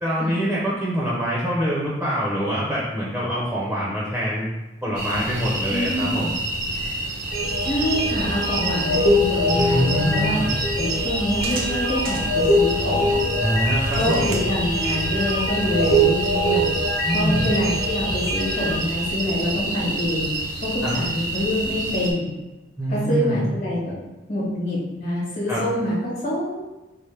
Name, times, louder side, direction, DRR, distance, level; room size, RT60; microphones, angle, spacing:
voice 1, 0.0-4.5 4.8-6.4 9.5-10.6 13.4-14.4 17.0-17.5 20.8-21.0 22.8-23.4 25.5-25.6, equal, 5° right, -7 dB, 0.6 m, -25 dB
sound 1, 5.0-22.1, right 2 dB, 45° right, 0.6 m, -28 dB
voice 2, 5.7-6.2 7.6-10.4 10.7-13.3 14.0-16.7 17.1-20.3 20.6-22.3 22.9-23.9 24.3-26.7, left 1 dB, 40° left, -8 dB, 1.2 m, -26 dB
sound 2, 7.3-18.7, equal, 70° left, 0.9 m, -24 dB
4.3 x 2.1 x 3.2 m, 1.0 s
head